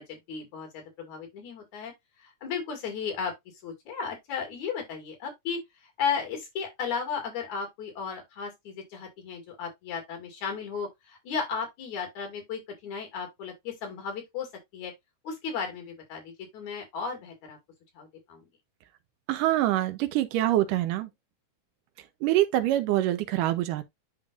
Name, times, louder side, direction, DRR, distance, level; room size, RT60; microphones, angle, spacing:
voice 1, 0.0-1.9 2.2-3.3 3.6-5.6 6.0-14.5 14.7-14.9 15.2-17.6 17.9-18.4, left 6 dB, 65° left, 3.4 m, -35 dB
voice 2, 19.3-21.1 22.2-23.8, right 14 dB, 90° right, 2.3 m, -25 dB
10.5 x 3.6 x 2.5 m
omnidirectional pair, 3.7 m